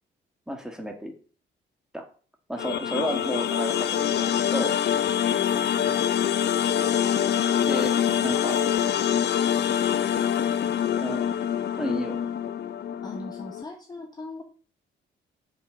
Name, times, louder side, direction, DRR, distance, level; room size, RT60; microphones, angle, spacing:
voice 1, 0.5-1.1 1.9-2.1 2.5-4.8 7.7-8.6 11.0-11.2 11.8-12.2, equal, 5° right, 3 dB, 1.9 m, -32 dB
sound 1, 2.6-13.6, left 9 dB, 60° left, 0.7 m, -25 dB
voice 2, 10.2-10.8 13.0-14.4, left 2 dB, 20° left, 3 dB, 1.1 m, -41 dB
6.9 x 5.1 x 6.2 m, 0.40 s
cardioid pair, 90°, 20 cm